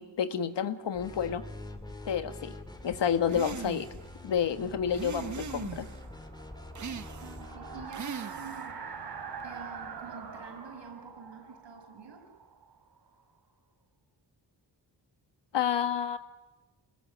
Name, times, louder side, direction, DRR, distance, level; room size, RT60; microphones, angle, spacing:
voice 1, 0.0-1.4 2.1-2.5 2.8-3.9 4.2-5.9 15.5-16.2, left 8 dB, 75° left, 10 dB, 1.5 m, -29 dB
sound 1, 0.9-8.0, left 2 dB, 10° left, 2.3 m, -45 dB
sound 2, 3.3-4.0 4.9-6.0 6.7-7.5 7.9-8.7, right 6 dB, 45° right, 0.9 m, -40 dB
sound 3, 4.4-13.2, right 5 dB, 65° right, 3.1 m, -45 dB
voice 2, 7.2-8.9 9.4-12.3, right 6 dB, 85° right, 3 dB, 5.8 m, -47 dB
26.0 x 20.0 x 7.3 m, 1.2 s
wide cardioid pair, 105°, 43 cm